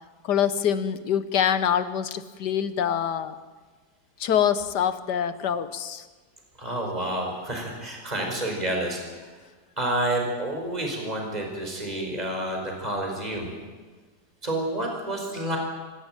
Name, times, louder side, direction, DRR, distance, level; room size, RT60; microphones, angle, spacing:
voice 1, 0.3-3.3 4.2-6.0, left 9 dB, 85° left, 13 dB, 1.7 m, -25 dB
voice 2, 6.6-9.3 9.8-13.5 14.4-15.6, right 1 dB, 25° right, 1 dB, 5.1 m, -29 dB
25.5 x 15.5 x 9.0 m, 1.4 s
omnidirectional pair, 1.8 m